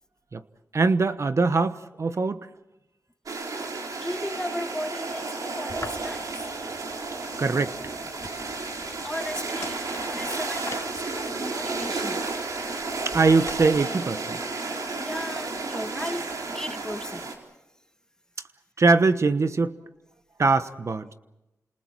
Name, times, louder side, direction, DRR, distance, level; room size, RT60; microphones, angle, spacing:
voice 1, 0.7-2.4 7.4-7.8 13.0-14.4 18.8-19.8 20.4-21.1, right 3 dB, 50° right, 1.1 m, -22 dB
sound 1, 3.3-17.3, right 3 dB, 75° right, 4.3 m, -32 dB
voice 2, 4.0-6.4 8.6-13.1 14.7-17.4, left 1 dB, 10° left, 1.7 m, -37 dB
sound 2, 5.7-13.6, left 3 dB, 50° left, 2.4 m, -45 dB
30.0 x 27.5 x 4.6 m
cardioid pair, 60°, 6 cm